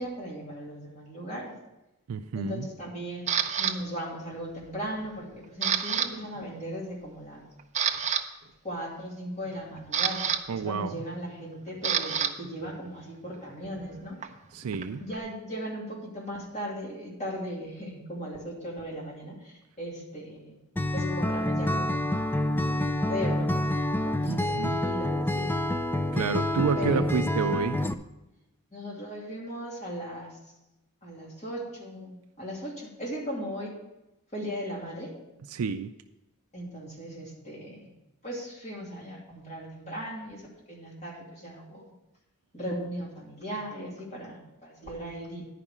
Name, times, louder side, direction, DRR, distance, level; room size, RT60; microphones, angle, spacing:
voice 1, 0.0-1.5 2.3-3.3 3.6-7.4 8.6-14.2 15.0-20.6 20.9-22.2 22.7-25.5 26.8-27.3 28.7-30.4 31.0-33.7 34.3-35.1 36.5-37.9 38.2-41.9 42.5-45.5, equal, 30° left, -4 dB, 2.8 m, -37 dB
voice 2, 2.1-2.7 10.5-11.0 14.5-15.0 24.3-24.8 26.1-27.8 35.5-35.9, right 6 dB, 75° right, 8 dB, 0.4 m, -29 dB
Camera, 3.3-3.7 4.3-4.7 5.0-6.1 6.3-6.6 7.1-7.2 7.6-8.2 9.4-12.3 12.6-15.2, right 8 dB, 30° right, 0.6 m, -29 dB
Acoustic guitar, 20.8-27.9, left 1 dB, 10° left, 0.4 m, -27 dB
10.5 x 5.1 x 7.2 m, 0.94 s
head